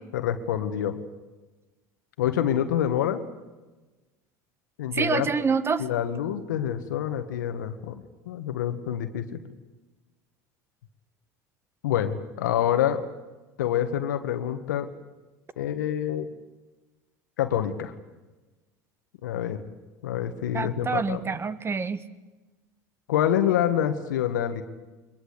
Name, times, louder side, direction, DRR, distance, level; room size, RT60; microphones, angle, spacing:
voice 1, 0.1-1.0 2.2-3.2 4.8-5.3 5.8-9.3 11.8-13.0 13.6-14.9 15.6-16.3 17.4-17.9 19.2-19.6 20.0-21.2 23.1-24.6, left 10 dB, 85° left, 8 dB, 1.8 m, -26 dB
voice 2, 4.9-5.8 20.5-22.0, right 5 dB, 25° right, 15 dB, 1.6 m, -26 dB
23.0 x 21.5 x 8.3 m, 1.2 s
hypercardioid pair, 90°, 10 cm